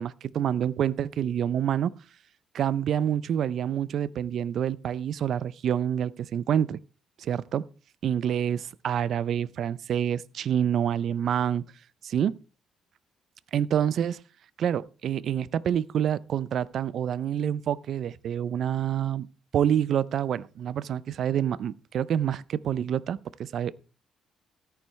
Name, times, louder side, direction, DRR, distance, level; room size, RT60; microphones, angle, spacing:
voice 1, 0.0-1.9 2.5-6.8 7.2-7.7 8.0-11.6 12.0-12.3 13.5-14.2 14.6-19.3 19.5-23.8, right 9 dB, 65° right, 0.4 m, -27 dB
13.5 x 9.2 x 3.2 m
cardioid pair, 90°, 0 cm